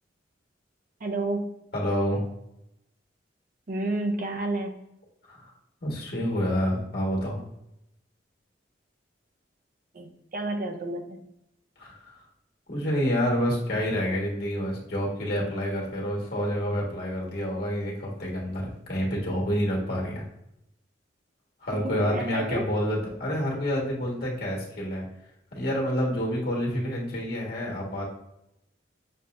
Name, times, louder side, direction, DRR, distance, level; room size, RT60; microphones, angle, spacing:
voice 1, 1.0-1.6 3.7-4.8 9.9-11.2 21.7-22.6, right 2 dB, 45° right, 3 dB, 0.6 m, -30 dB
voice 2, 1.7-2.2 5.3-5.5 5.8-7.4 11.8-12.1 12.7-20.2 21.6-25.0 25.5-28.1, equal, 55° left, -3 dB, 1.5 m, -28 dB
6.4 x 2.8 x 2.5 m, 0.82 s
head